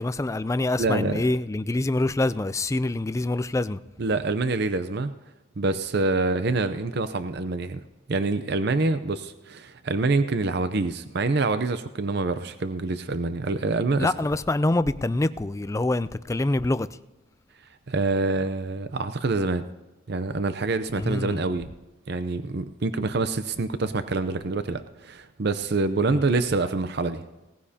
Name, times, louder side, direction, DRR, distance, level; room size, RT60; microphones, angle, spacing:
voice 1, 0.0-3.8 14.0-16.9 20.9-21.4 26.1-26.2, left 2 dB, 15° left, 0.3 m, -25 dB
voice 2, 0.8-1.2 4.0-5.1 5.6-7.8 8.1-14.1 17.9-19.7 20.1-21.7 22.1-27.3, right 3 dB, 55° right, 0.6 m, -26 dB
18.5 x 15.0 x 2.8 m
head